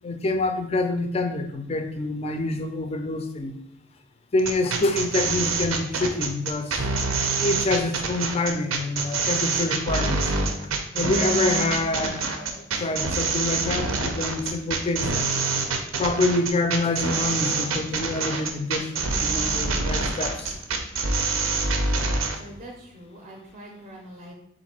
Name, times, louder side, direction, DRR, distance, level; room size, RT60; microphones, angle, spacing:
voice 1, 0.0-3.5 4.3-6.8 7.4-10.3 10.9-15.3 16.0-20.5, left 2 dB, 30° left, 7 dB, 0.4 m, -26 dB
sound 1, 4.4-22.4, right 4 dB, 90° right, 0.6 m, -26 dB
voice 2, 22.4-24.3, right 1 dB, 35° right, 1 dB, 0.5 m, -43 dB
3.9 x 2.5 x 4.2 m, 0.77 s
head